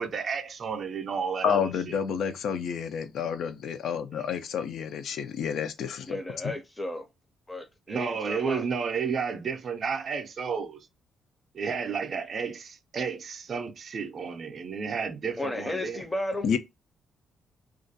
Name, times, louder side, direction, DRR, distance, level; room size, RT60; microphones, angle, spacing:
voice 1, 0.0-2.0 4.1-4.2 7.9-10.9 11.5-16.0, right 6 dB, 50° right, 0.4 m, -32 dB
voice 2, 1.4-6.2 6.4-6.5 16.4-16.6, left 7 dB, 70° left, 0.3 m, -29 dB
voice 3, 6.1-7.1 7.5-8.6 15.4-16.5, left 1 dB, 15° left, 0.5 m, -34 dB
2.3 x 2.2 x 2.6 m
cardioid pair, 90°, 0 cm